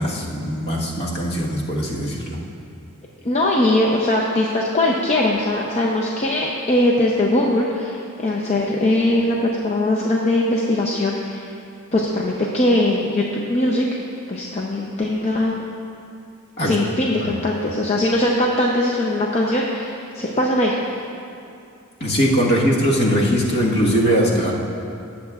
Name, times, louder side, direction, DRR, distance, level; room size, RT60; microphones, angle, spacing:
voice 1, 0.0-2.4 16.6-16.7 17.2-17.3 22.0-24.5, equal, 50° left, -3 dB, 1.4 m, -20 dB
voice 2, 3.2-11.5 11.9-13.9 14.3-15.6 16.6-20.8, left 1 dB, 30° left, -2 dB, 0.6 m, -20 dB
18.5 x 7.4 x 2.4 m, 2.6 s
head